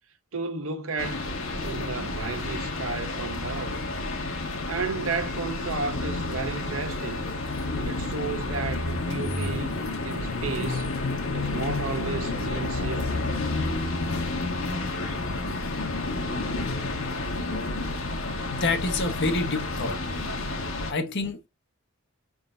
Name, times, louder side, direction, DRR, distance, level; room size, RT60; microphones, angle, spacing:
voice 1, 0.3-1.3 1.6-3.7 4.7-7.3 7.8-9.8 10.0-10.9 11.2-13.2, right 4 dB, 80° right, 0.8 m, -33 dB
sound 1, 1.0-20.9, left 2 dB, 80° left, 1.2 m, -30 dB
voice 2, 18.5-20.0 20.9-21.5, left 3 dB, 60° left, 0.9 m, -27 dB
5.4 x 3.8 x 2.4 m
head